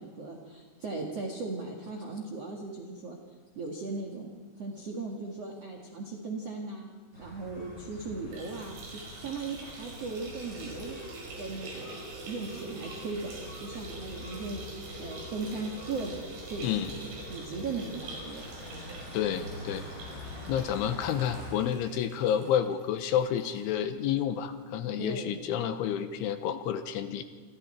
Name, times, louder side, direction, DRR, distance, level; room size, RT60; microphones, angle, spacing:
voice 1, 0.0-3.2 3.5-4.3 4.6-6.9 7.2-8.8 9.2-11.0 11.4-12.0 12.2-14.6 15.0-16.2 16.5-18.5 25.0-25.3, right 3 dB, 65° right, 0 dB, 1.5 m, -37 dB
sound 1, 7.1-21.5, equal, 20° left, 7.6 m, -45 dB
sound 2, 8.2-23.6 24.0-24.1 24.4-24.5 25.5-25.6, right 2 dB, 90° right, 8.1 m, -45 dB
voice 2, 16.6-16.9 19.1-19.9 20.5-27.2, left 9 dB, 80° left, 9 dB, 3.2 m, -30 dB
28.5 x 25.0 x 4.5 m, 1.5 s
omnidirectional pair, 6.0 m